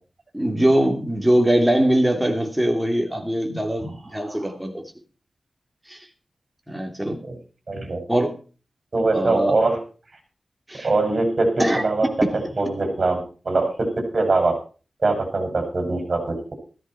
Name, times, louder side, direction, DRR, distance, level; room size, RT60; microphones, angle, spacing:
voice 1, 0.3-4.8 5.9-6.0 6.7-7.2 8.1-8.4 9.1-9.6 10.7-10.9 11.6-11.8, right 1 dB, 5° right, 3 dB, 2.9 m, -21 dB
voice 2, 4.2-4.5 7.0-7.4 7.7-8.0 8.9-9.8 10.7-12.1 12.6-14.5 15.0-16.5, right 3 dB, 45° right, 4 dB, 6.3 m, -23 dB
14.5 x 12.5 x 4.6 m, 0.36 s
wide cardioid pair, 110°, 0 cm